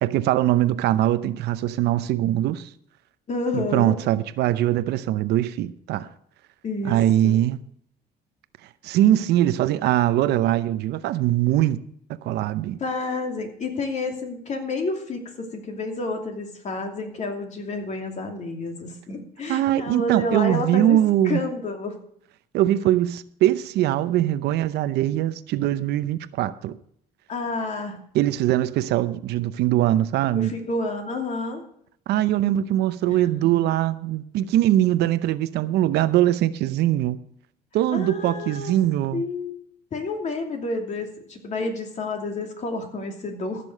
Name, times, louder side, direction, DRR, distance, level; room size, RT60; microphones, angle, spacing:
voice 1, 0.0-2.7 3.5-6.1 6.8-7.6 8.8-11.8 12.2-12.8 19.5-21.4 22.5-26.8 28.1-30.5 32.1-37.2 37.7-39.2, right 13 dB, 80° right, 0.7 m, -22 dB
voice 2, 3.3-3.9 6.6-7.0 7.2-7.4 12.8-21.9 27.3-28.0 30.3-31.6 33.1-33.6 37.9-38.7 39.1-39.6 39.9-43.7, left 3 dB, 45° left, 2.8 m, -30 dB
14.5 x 6.9 x 6.6 m
cardioid pair, 110°, 17 cm